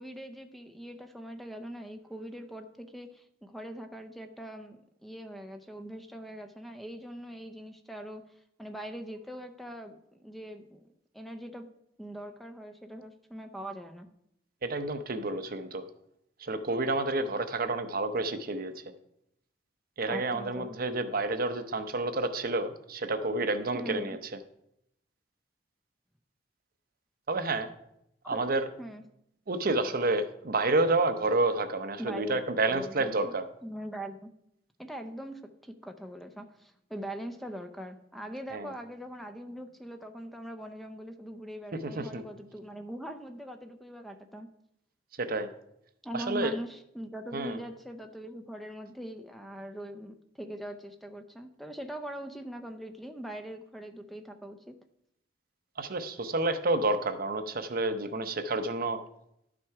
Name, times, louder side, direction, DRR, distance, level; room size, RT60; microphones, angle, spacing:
voice 1, 0.0-8.2 8.6-10.9 11.1-11.7 12.0-14.1 20.1-20.7 23.7-24.2 28.2-28.4 28.8-29.0 32.0-33.3 33.6-34.3 34.8-44.5 46.0-54.7, equal, ahead, 6 dB, 0.5 m, -42 dB
voice 2, 14.6-15.8 16.4-18.7 20.0-24.4 27.3-27.7 28.3-28.7 29.5-33.5 38.5-38.7 41.8-42.2 45.2-45.5 46.1-46.5 47.3-47.6 55.8-59.0, right 2 dB, 50° right, 9 dB, 0.8 m, -29 dB
11.5 x 6.0 x 4.7 m, 0.78 s
head